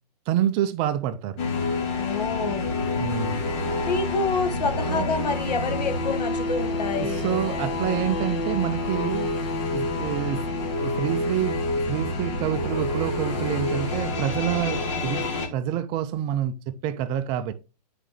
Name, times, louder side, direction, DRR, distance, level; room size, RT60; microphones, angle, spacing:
voice 1, 0.3-1.4 3.0-3.4 4.9-5.1 6.9-9.3 9.7-10.4 10.8-11.6 11.9-17.5, right 11 dB, 25° right, 0.4 m, -27 dB
sound 1, 1.4-15.5, left 2 dB, 45° left, 2.1 m, -28 dB
voice 2, 2.0-2.6 3.9-7.2, left 4 dB, 75° left, 1.6 m, -27 dB
9.8 x 5.1 x 3.1 m
hypercardioid pair, 145°, 21 cm